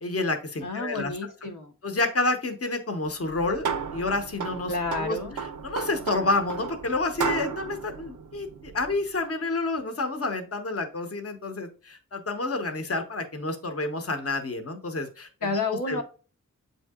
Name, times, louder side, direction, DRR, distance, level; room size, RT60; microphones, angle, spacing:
voice 1, 0.0-1.1 1.8-5.2 5.6-16.0, left 3 dB, 50° left, 5 dB, 0.8 m, -29 dB
voice 2, 0.6-1.7 4.7-5.4 15.4-16.0, left 3 dB, 80° left, 2 dB, 0.8 m, -30 dB
sound 1, 3.2-9.1, right 6 dB, 80° right, 0.5 m, -34 dB
7.7 x 2.7 x 2.3 m, 0.36 s
wide cardioid pair, 50°, 30 cm